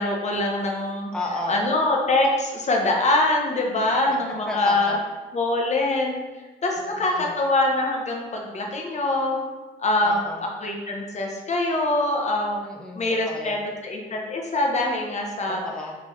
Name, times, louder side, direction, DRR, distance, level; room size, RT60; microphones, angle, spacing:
voice 1, 0.0-1.1 1.5-5.0 5.3-6.2 6.6-9.4 9.8-10.2 10.6-12.6 13.0-13.6 13.8-15.6, left 2 dB, 35° left, 0 dB, 0.9 m, -23 dB
voice 2, 1.1-1.6 4.1-5.0 6.8-7.3 10.0-10.5 12.6-13.7 15.5-16.0, left 2 dB, 5° left, 0 dB, 0.6 m, -33 dB
3.8 x 3.7 x 3.1 m, 1.3 s
cardioid pair, 90°, 20 cm